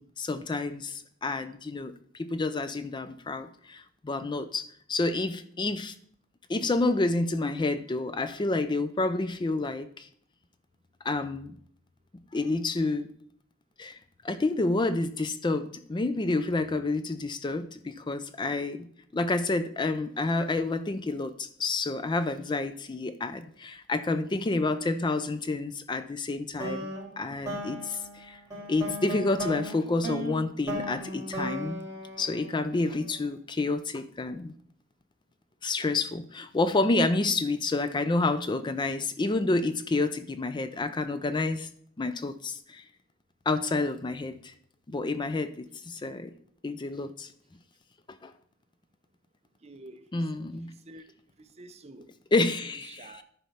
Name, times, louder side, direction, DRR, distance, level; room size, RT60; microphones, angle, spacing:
voice 1, 0.0-5.9 6.5-10.1 11.0-11.6 12.3-13.1 13.8-14.0 14.2-18.9 19.1-28.4 28.7-31.8 32.2-34.5 35.6-41.7 42.0-42.8 43.5-44.5 44.9-46.3 46.6-47.3 48.2-48.3 50.1-50.7 52.3-53.2, left 2 dB, 25° left, 11 dB, 0.4 m, -29 dB
sound 1, 26.6-33.0, equal, 15° right, 3.4 m, -37 dB
voice 2, 49.6-50.3 50.6-51.0 51.4-52.1 52.4-53.2, right 2 dB, 35° right, 9 dB, 0.7 m, -49 dB
10.5 x 4.2 x 5.6 m, 0.63 s
head